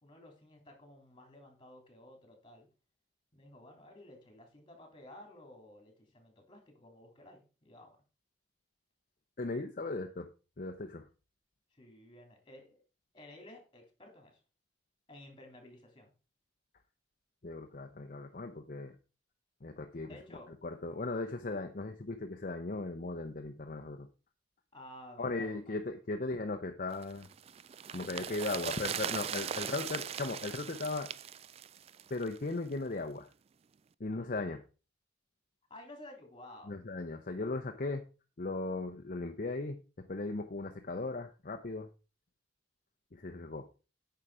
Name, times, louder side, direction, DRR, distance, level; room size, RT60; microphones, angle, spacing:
voice 1, 0.0-2.7 3.3-8.0 10.0-10.1 11.7-12.8 13.1-14.4 15.1-16.1 20.0-20.5 24.7-25.8 28.0-28.9 35.7-36.8, left 1 dB, 30° left, 3 dB, 3.2 m, -53 dB
voice 2, 9.4-10.3 10.6-11.1 17.4-19.0 19.6-20.1 20.5-24.1 25.2-27.3 27.9-31.1 32.1-33.3 34.0-34.6 36.7-38.1 38.4-41.9 43.1-43.7, left 3 dB, 50° left, 5 dB, 0.7 m, -37 dB
sound 1, 27.0-32.4 32.7-32.8, right 8 dB, 35° right, 0.3 m, -39 dB
9.1 x 5.7 x 4.9 m, 0.34 s
head